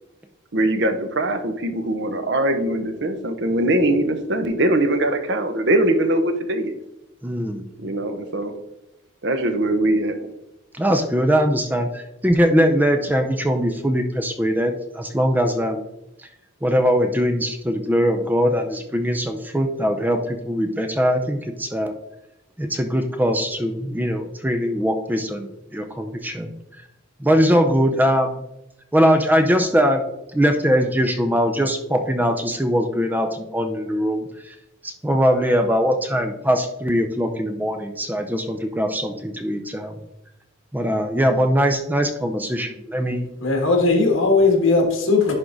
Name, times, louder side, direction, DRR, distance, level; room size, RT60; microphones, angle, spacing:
voice 1, 0.5-6.7 7.8-8.5 9.2-10.2, right 1 dB, 55° right, 8 dB, 0.8 m, -21 dB
voice 2, 7.2-7.7 10.7-15.8 16.2-16.3 16.6-21.9 22.6-26.5 27.2-28.4 28.9-30.0 30.3-34.5 34.8-40.0 40.7-43.3, equal, 10° right, 6 dB, 0.4 m, -21 dB
voice 3, 43.4-45.3, left 3 dB, 70° left, 2 dB, 1.7 m, -18 dB
11.0 x 3.7 x 3.9 m, 0.89 s
head